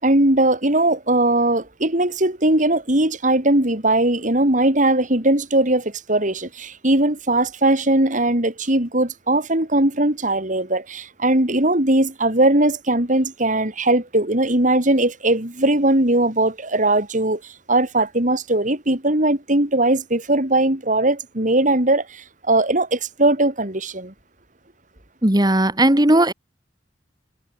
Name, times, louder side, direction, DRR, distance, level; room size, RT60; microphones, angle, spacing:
voice 1, 0.0-17.4 17.7-24.1, right 1 dB, 45° right, 4.5 m, -19 dB
voice 2, 25.2-26.3, right 1 dB, 25° right, 2.2 m, -16 dB
head